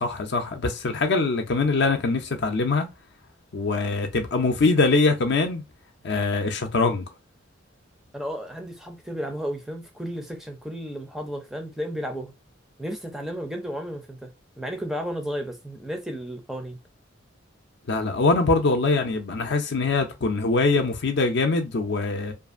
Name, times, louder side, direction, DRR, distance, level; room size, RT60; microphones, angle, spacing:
voice 1, 0.0-2.9 3.5-5.6 6.0-7.0 17.9-22.3, left 3 dB, 55° left, 0.5 m, -23 dB
voice 2, 8.1-12.3 12.8-14.3 14.6-16.8, equal, ahead, 0.5 m, -33 dB
2.5 x 2.4 x 2.4 m
head